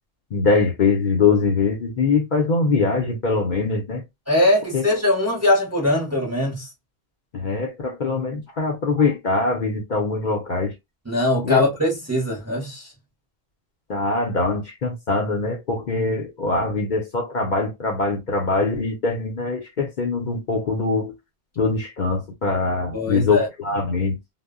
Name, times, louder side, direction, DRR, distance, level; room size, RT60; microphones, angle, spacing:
voice 1, 0.3-4.0 4.7-4.9 7.3-10.7 11.4-11.6 13.9-21.1 21.6-24.2, left 4 dB, 55° left, 0.6 m, -22 dB
voice 2, 4.3-6.7 11.1-12.9 22.9-23.5, left 1 dB, 20° right, 0.6 m, -21 dB
2.1 x 2.0 x 3.5 m
omnidirectional pair, 1.1 m